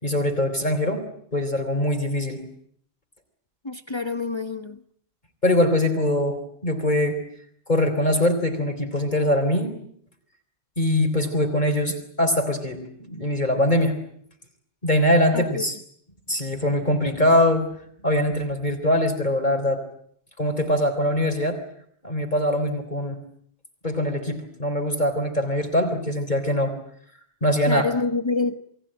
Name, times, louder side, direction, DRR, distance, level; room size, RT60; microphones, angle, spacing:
voice 1, 0.0-2.4 5.4-7.2 7.7-9.7 10.8-14.0 14.8-15.7 16.3-17.7 18.0-19.8 20.4-21.6 22.0-23.2 23.8-26.7 27.4-27.8, left 1 dB, 45° left, 5 dB, 3.9 m, -22 dB
voice 2, 3.6-4.8 15.3-15.7 27.7-28.6, left 3 dB, 25° left, 9 dB, 1.2 m, -27 dB
29.0 x 22.0 x 8.9 m, 0.65 s
omnidirectional pair, 1.1 m